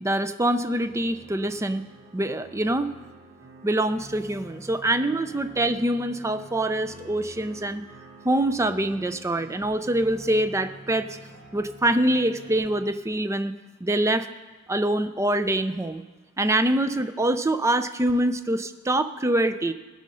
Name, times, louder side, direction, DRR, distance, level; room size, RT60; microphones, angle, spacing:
voice 1, 0.0-1.8 2.1-2.9 3.6-7.8 8.2-11.1 11.5-13.5 13.8-14.3 14.7-16.0 16.4-19.7, right 1 dB, 15° right, 10 dB, 0.4 m, -24 dB
sound 1, 0.8-12.9, right 2 dB, 75° right, 3.9 m, -47 dB
19.0 x 6.4 x 5.5 m, 1.3 s
head